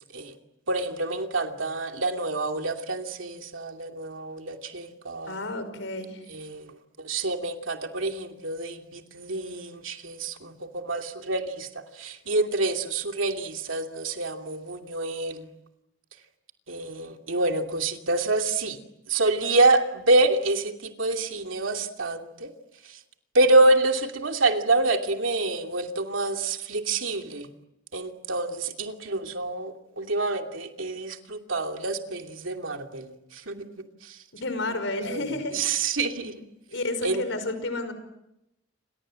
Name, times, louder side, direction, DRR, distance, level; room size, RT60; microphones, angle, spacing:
voice 1, 0.7-5.4 6.3-6.7 7.0-11.7 11.9-15.5 16.7-18.8 19.1-22.5 22.9-23.0 23.3-27.5 27.9-33.6 34.0-34.2 35.0-35.2 35.5-36.3 37.0-37.2, right 2 dB, 80° right, 4 dB, 2.7 m, -27 dB
voice 2, 5.3-6.2 34.4-35.9 36.7-37.9, left 2 dB, 70° left, 11 dB, 5.5 m, -31 dB
29.0 x 26.0 x 7.7 m, 0.86 s
head